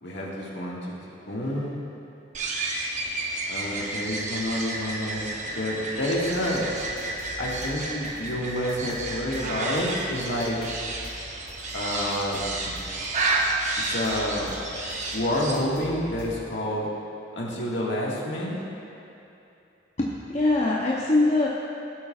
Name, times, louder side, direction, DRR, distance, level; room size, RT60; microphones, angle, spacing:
voice 1, 0.0-0.9 1.3-1.8 3.5-6.7 7.4-10.7 11.7-12.7 13.9-14.5 15.1-16.9 17.3-18.6, left 1 dB, 65° left, -4 dB, 1.8 m, -29 dB
sound 1, 2.3-15.6, right 2 dB, 40° right, 0.9 m, -31 dB
sound 2, 6.3-16.5, left 1 dB, 90° left, 2.1 m, -45 dB
voice 2, 20.0-21.5, left 2 dB, 35° left, -4 dB, 0.7 m, -22 dB
16.5 x 8.4 x 2.4 m, 2.8 s
head